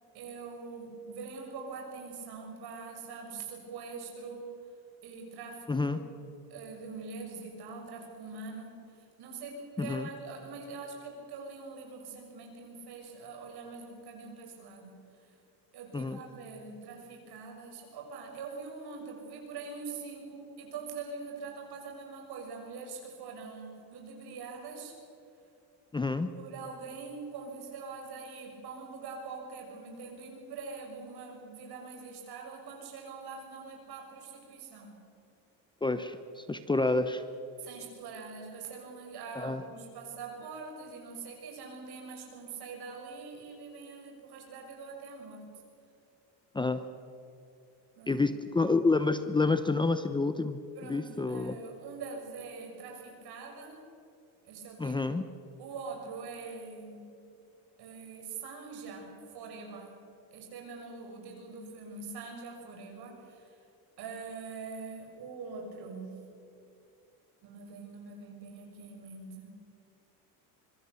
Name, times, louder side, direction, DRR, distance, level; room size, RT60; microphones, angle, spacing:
voice 1, 0.1-4.5 5.0-6.1 6.4-14.9 15.2-15.3 15.7-24.9 26.3-35.0 37.6-45.4 48.0-48.2 50.7-53.8 54.4-55.2 55.6-57.1 57.8-60.0 60.3-63.6 64.0-66.2 67.4-69.5, right 4 dB, 65° right, 2 dB, 6.8 m, -44 dB
voice 2, 5.7-6.0 9.8-10.1 15.9-16.2 25.9-26.3 35.8-37.2 39.3-39.6 46.5-46.9 48.1-51.6 54.8-55.2, left 3 dB, 10° left, 10 dB, 0.7 m, -29 dB
24.5 x 24.0 x 7.0 m, 2.5 s
cardioid pair, 140°, 41 cm